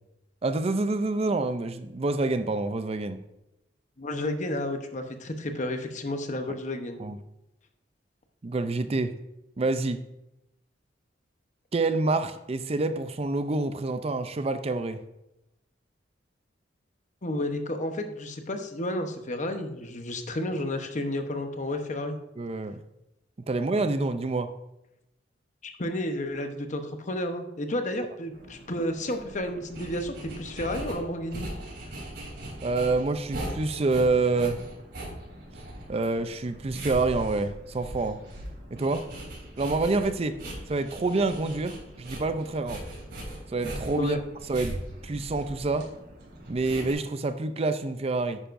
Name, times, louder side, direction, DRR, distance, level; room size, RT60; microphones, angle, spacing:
voice 1, 0.4-3.2 7.0-7.2 8.4-9.1 9.6-10.0 11.7-15.0 22.4-22.8 23.5-24.5 32.6-34.6 35.9-38.2 38.7-39.0 39.6-40.4 40.7-42.8 43.5-44.2 44.5-44.8 45.0-45.9 46.5-48.4, right 3 dB, 35° right, 10 dB, 0.5 m, -27 dB
voice 2, 4.0-7.0 17.2-22.2 25.6-31.5 44.0-44.2, left 1 dB, 40° left, 6 dB, 0.9 m, -31 dB
sound 1, 28.3-46.9, right 1 dB, 65° right, 3.6 m, -40 dB
10.0 x 9.2 x 2.6 m, 0.89 s
head